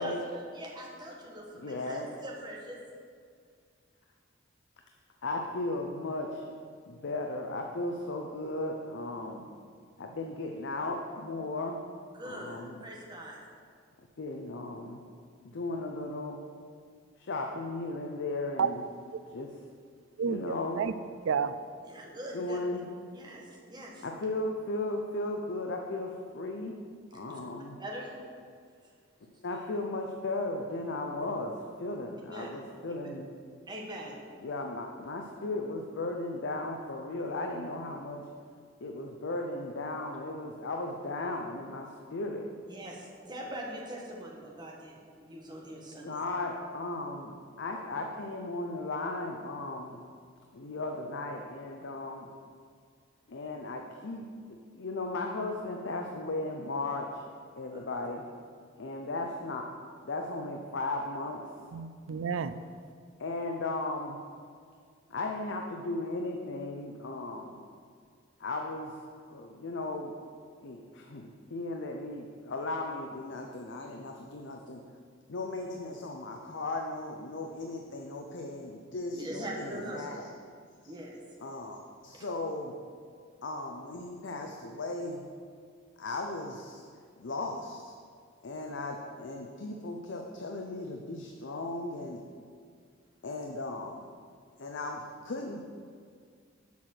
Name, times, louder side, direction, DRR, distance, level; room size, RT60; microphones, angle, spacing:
voice 1, 0.0-2.8 12.2-13.4 21.8-22.6 23.1-24.0 27.3-27.4 27.8-28.1 32.3-32.5 32.9-33.1 33.7-34.2 42.7-46.1 57.7-57.8 79.1-80.1 80.9-81.2 82.1-82.3, right 1 dB, 20° right, -2 dB, 1.4 m, -42 dB
voice 2, 1.5-2.1 5.2-6.5 6.9-9.5 10.0-11.8 12.2-12.8 14.2-15.0 15.4-16.4 17.2-18.8 19.3-19.6 20.3-20.9 22.3-22.9 24.0-26.8 27.1-27.8 29.2-33.3 34.4-38.2 38.8-42.5 46.0-50.0 50.5-52.3 53.3-57.2 57.6-58.2 58.8-59.7 60.0-61.4 63.2-64.2 65.1-67.6 68.4-69.0 69.3-70.2 70.6-74.8 75.3-80.3 80.8-80.9 81.4-82.8 83.4-85.2 86.0-86.9 87.2-87.9 88.4-92.2 93.2-94.0 94.6-95.6, left 2 dB, 65° left, 2 dB, 0.6 m, -36 dB
voice 3, 20.2-20.9 21.3-21.6 61.7-62.6, right 6 dB, 80° right, 13 dB, 0.4 m, -30 dB
7.2 x 5.9 x 6.4 m, 2.1 s
head